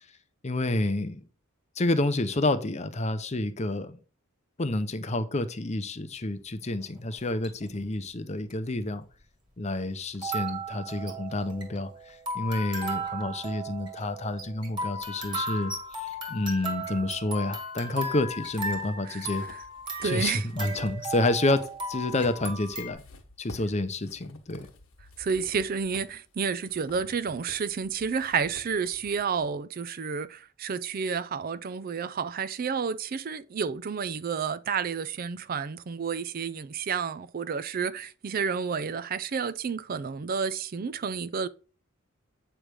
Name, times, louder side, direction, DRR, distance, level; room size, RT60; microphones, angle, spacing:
voice 1, 0.4-1.2 1.8-4.0 4.6-9.0 9.6-19.4 20.0-23.0 23.4-24.7, left 2 dB, 30° left, 0.7 m, -29 dB
sound 1, 7.2-7.7 8.5-8.6 10.1-22.9, right 1 dB, 20° right, 2.0 m, -36 dB
sound 2, 18.1-21.0 21.3-29.5, left 2 dB, 70° left, 1.3 m, -50 dB
voice 2, 19.0-19.6 20.0-20.5 25.2-41.5, right 6 dB, 40° right, 0.4 m, -30 dB
8.7 x 3.4 x 6.2 m
head